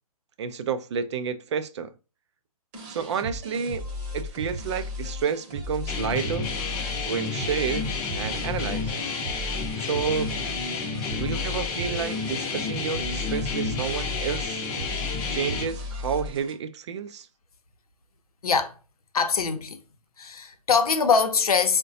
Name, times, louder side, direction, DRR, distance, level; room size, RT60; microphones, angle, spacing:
voice 1, 0.4-1.9 2.9-3.9 4.1-6.5 7.1-8.9 9.8-10.3 11.1-14.6 15.3-17.3, right 7 dB, 50° right, 0.4 m, -30 dB
sound 1, 2.7-16.5, left 1 dB, 25° right, 0.8 m, -36 dB
sound 2, 5.9-15.6, left 5 dB, 20° left, 0.6 m, -31 dB
voice 2, 18.4-18.8 19.1-19.8 20.2-21.8, left 5 dB, 75° left, 0.6 m, -23 dB
3.8 x 2.1 x 2.6 m
hypercardioid pair, 135°, 19 cm